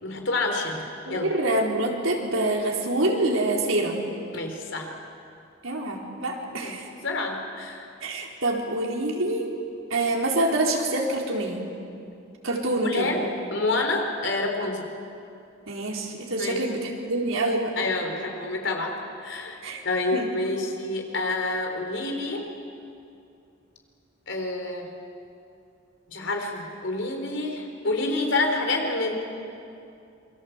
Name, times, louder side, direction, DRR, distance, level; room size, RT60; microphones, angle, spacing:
voice 1, 0.0-1.3 4.3-4.9 6.5-6.8 7.0-7.9 12.8-13.2 13.5-14.9 16.4-16.6 17.8-18.9 19.2-19.6 19.8-22.5 24.3-24.9 26.1-29.1, left 2 dB, 70° left, 3 dB, 4.1 m, -28 dB
voice 2, 1.1-4.0 5.6-6.9 8.0-9.4 9.9-11.6 12.4-13.1 15.7-17.7 19.6-19.8 20.1-20.3, right 2 dB, 85° right, 0 dB, 4.1 m, -26 dB
27.5 x 24.0 x 8.2 m, 2.6 s
head